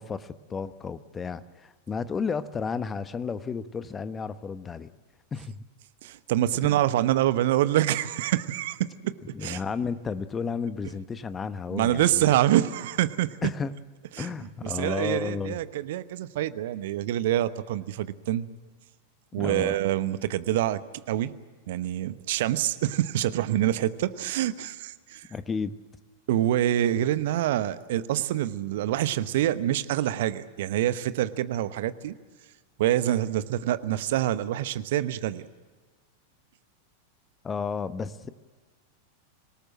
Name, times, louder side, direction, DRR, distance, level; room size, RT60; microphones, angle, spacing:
voice 1, 0.0-4.9 5.3-5.6 6.6-6.8 9.3-12.4 13.4-13.7 14.2-15.6 19.4-19.8 25.3-25.7 37.4-38.3, left 5 dB, 20° left, 13 dB, 1.1 m, -32 dB
voice 2, 6.0-9.6 11.7-13.4 14.1-14.3 14.6-18.5 19.3-20.8 21.1-21.3 21.7-25.3 26.3-32.1 32.8-35.5, right 13 dB, 55° right, 14 dB, 1.0 m, -26 dB
25.5 x 18.5 x 7.5 m, 1.4 s
figure-of-eight pair, 90°, 0 cm